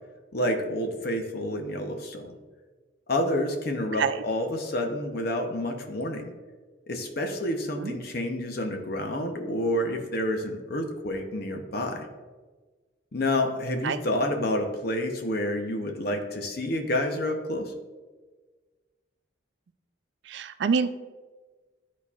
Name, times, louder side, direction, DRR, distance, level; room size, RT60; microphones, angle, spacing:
voice 1, 0.3-2.3 3.1-6.3 6.9-12.1 13.1-17.7, left 1 dB, 50° left, 5 dB, 0.7 m, -29 dB
voice 2, 20.3-20.9, right 5 dB, 60° right, 11 dB, 0.3 m, -26 dB
11.5 x 4.2 x 2.4 m, 1.3 s
head